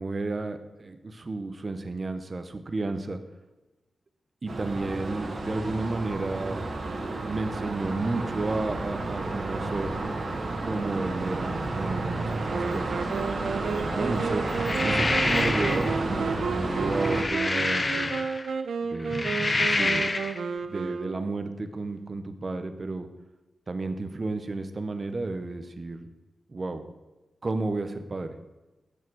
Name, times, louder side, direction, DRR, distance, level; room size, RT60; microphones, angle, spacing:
voice 1, 0.0-3.2 4.4-6.7 7.2-10.0 10.6-13.0 13.8-14.4 14.8-18.1 18.8-19.3 19.6-20.2 20.6-23.1 23.7-26.1 26.5-26.8 27.4-28.4, right 3 dB, 30° right, 9 dB, 0.7 m, -32 dB
sound 1, 4.5-17.2, right 2 dB, 50° right, 1.4 m, -31 dB
Wind instrument woodwind instrument, 12.5-21.5, right 5 dB, 90° right, 0.7 m, -32 dB
sound 2, 14.5-16.0 16.8-18.5 19.0-20.4, left 2 dB, 25° left, 0.5 m, -27 dB
8.3 x 7.2 x 6.1 m, 1.1 s
wide cardioid pair, 155°, 0 cm